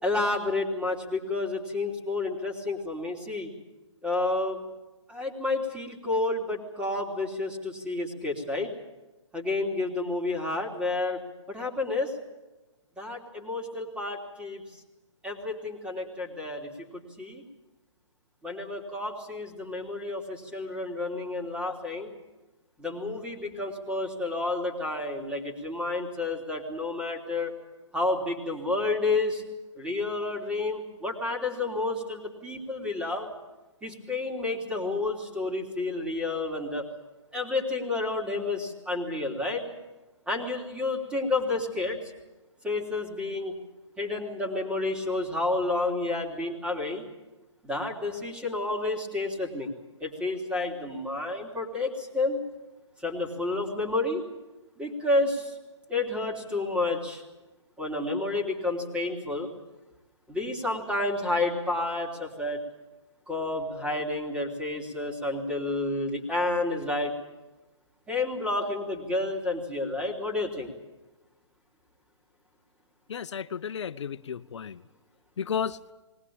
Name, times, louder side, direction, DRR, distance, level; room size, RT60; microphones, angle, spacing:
voice 1, 0.0-3.5 4.0-4.6 5.1-8.7 9.3-11.2 11.5-12.1 13.0-14.6 15.2-17.4 18.4-22.1 22.8-27.5 27.9-29.4 29.8-33.3 33.8-36.9 37.3-39.6 40.3-42.0 42.6-43.6 44.0-47.0 47.6-49.7 50.0-52.4 53.0-54.2 54.8-55.5 55.9-57.2 57.8-59.5 60.3-62.6 63.3-67.1 68.1-70.7, left 2 dB, 5° right, 1 dB, 3.2 m, -30 dB
voice 2, 73.1-74.8 75.4-75.8, left 7 dB, 65° left, 14 dB, 0.8 m, -33 dB
20.5 x 19.5 x 8.7 m, 1.1 s
hypercardioid pair, 135°, 16 cm